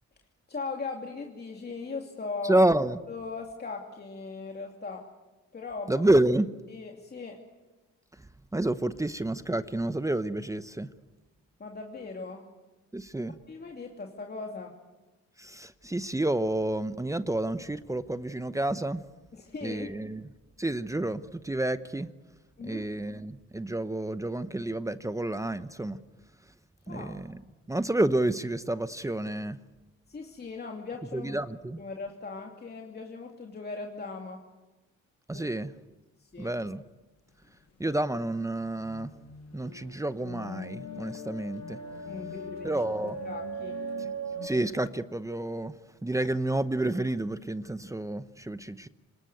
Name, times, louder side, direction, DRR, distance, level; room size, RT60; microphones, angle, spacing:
voice 1, 0.5-2.6 3.1-5.1 5.5-6.0 6.7-7.4 11.6-12.4 13.5-14.7 19.3-19.9 22.6-22.9 26.9-27.2 30.1-31.3 31.8-34.4 35.3-35.5 36.2-36.5 42.0-42.8 43.2-43.8, left 4 dB, 35° left, 2 dB, 2.8 m, -39 dB
voice 2, 2.4-3.0 5.9-6.5 8.5-10.9 12.9-13.4 15.4-19.0 19.6-20.2 20.6-22.1 22.6-26.0 26.9-27.4 27.7-29.6 31.1-31.8 35.3-35.7 36.4-36.8 37.8-39.1 39.5-41.8 42.6-43.2 44.4-48.9, right 1 dB, 10° right, 13 dB, 0.8 m, -29 dB
sound 1, 38.8-44.5, right 1 dB, 60° left, 7.2 m, -39 dB
25.5 x 21.0 x 9.2 m, 1.1 s
cardioid pair, 90°, 30 cm